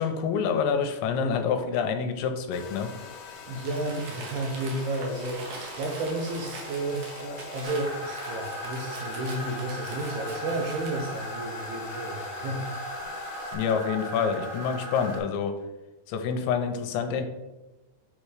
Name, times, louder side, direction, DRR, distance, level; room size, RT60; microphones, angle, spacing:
voice 1, 0.0-2.9 13.5-15.6 16.1-17.2, left 6 dB, 85° left, 6 dB, 2.9 m, -27 dB
Domestic sounds home sounds, 2.5-13.6, left 4 dB, 70° left, 2.2 m, -43 dB
voice 2, 3.5-12.7, right 2 dB, 85° right, 1 dB, 2.3 m, -32 dB
Crumpling crinkling, 3.6-11.2, right 3 dB, 65° right, 2.2 m, -43 dB
sound 1, 7.6-15.2, equal, 35° left, 1.4 m, -37 dB
7.7 x 3.2 x 4.8 m, 1.1 s
omnidirectional pair, 5.2 m